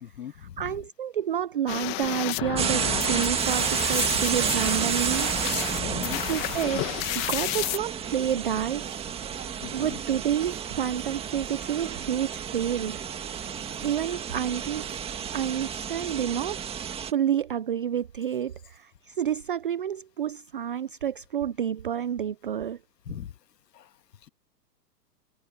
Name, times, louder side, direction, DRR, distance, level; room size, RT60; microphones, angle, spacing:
voice 1, 0.0-0.8 5.8-6.2 9.6-10.0 23.1-23.3 23.7-23.9, left 10 dB, 75° left, 1.9 m, -39 dB
voice 2, 0.6-2.8 3.1-5.3 6.0-6.8 7.1-9.0 9.7-13.0 13.4-13.6 13.8-15.0 15.3-16.6 17.1-22.8, right 9 dB, 35° right, 0.4 m, -29 dB
sound 1, 1.7-7.8, left 22 dB, 25° left, 1.6 m, -32 dB
sound 2, 2.6-17.1, right 8 dB, 10° right, 1.9 m, -31 dB
sound 3, 4.2-15.7, right 12 dB, 60° right, 3.2 m, -47 dB
hypercardioid pair, 150°, 49 cm